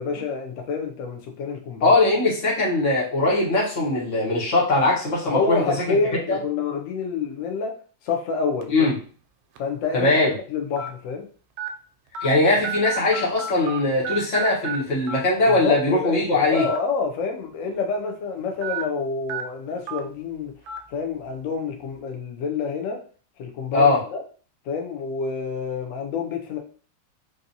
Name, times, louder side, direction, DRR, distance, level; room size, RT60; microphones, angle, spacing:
voice 1, 0.0-2.0 5.3-7.7 8.0-8.9 9.6-10.1 10.5-11.3 15.5-20.5 20.9-23.0 23.4-24.2 24.7-26.6, left 5 dB, 90° left, 3 dB, 0.7 m, -28 dB
voice 2, 1.8-5.6 6.3-6.4 8.7-8.9 9.9-10.3 12.2-16.6 23.7-24.0, left 2 dB, 45° left, -4 dB, 1.4 m, -20 dB
sound 1, 8.6-8.8 9.6-9.7 10.8-10.9 11.6-11.7 12.1-12.3 12.6-13.8 14.0-14.8 15.1-15.2 16.5-16.8 17.1-17.2 18.6-18.8 19.3-19.4 19.9-20.0 20.7-20.8, right 5 dB, 85° right, 1.4 m, -30 dB
3.8 x 2.6 x 2.7 m, 0.40 s
omnidirectional pair, 2.1 m